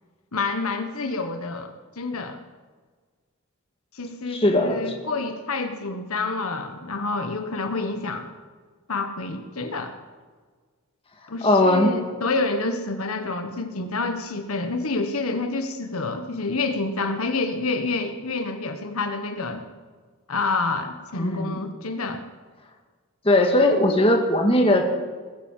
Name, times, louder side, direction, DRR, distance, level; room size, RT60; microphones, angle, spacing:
voice 1, 0.3-2.4 3.9-8.3 8.9-9.9 11.3-19.6 20.3-22.2, left 3 dB, 75° left, 6 dB, 1.4 m, -28 dB
voice 2, 4.3-4.8 11.4-11.9 21.2-21.6 23.3-24.8, left 1 dB, 25° left, 2 dB, 1.8 m, -19 dB
20.5 x 9.1 x 7.5 m, 1.5 s
head